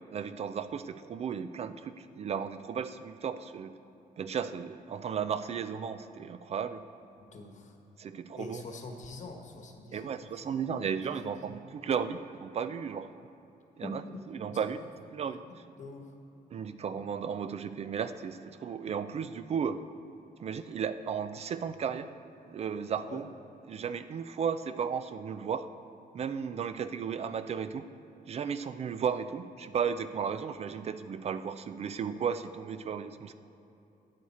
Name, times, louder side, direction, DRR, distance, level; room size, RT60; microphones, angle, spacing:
voice 1, 0.1-3.7 4.2-6.8 8.0-8.6 9.9-13.1 13.8-14.0 14.3-14.8 15.1-15.4 16.5-19.8 20.4-22.1 22.5-23.3 23.7-25.7 26.1-27.9 28.3-33.3, right 7 dB, 45° right, 11 dB, 0.4 m, -34 dB
voice 2, 7.2-7.8 8.3-11.5 13.8-14.9 15.8-16.1 23.1-23.2, left 3 dB, 50° left, 3 dB, 1.3 m, -45 dB
13.0 x 9.4 x 4.2 m, 2.9 s
wide cardioid pair, 150°, 15 cm